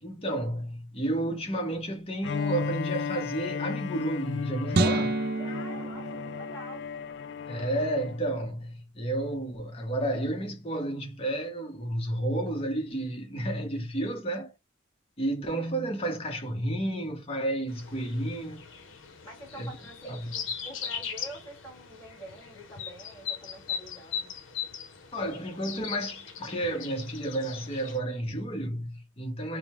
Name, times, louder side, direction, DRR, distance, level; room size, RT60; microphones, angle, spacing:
voice 1, 0.0-5.2 7.5-14.5 15.2-18.7 19.5-19.7 20.0-20.3 25.1-29.6, right 1 dB, 30° left, 0.9 m, -31 dB
Bowed string instrument, 2.2-8.3, left 6 dB, 60° left, 0.3 m, -35 dB
sound 1, 4.7-7.1, right 3 dB, 50° right, 0.4 m, -29 dB
voice 2, 5.3-6.9 19.2-24.3, right 1 dB, 15° left, 1.9 m, -46 dB
sound 2, 17.7-28.0, left 7 dB, 80° left, 0.7 m, -39 dB
3.8 x 2.1 x 4.4 m
head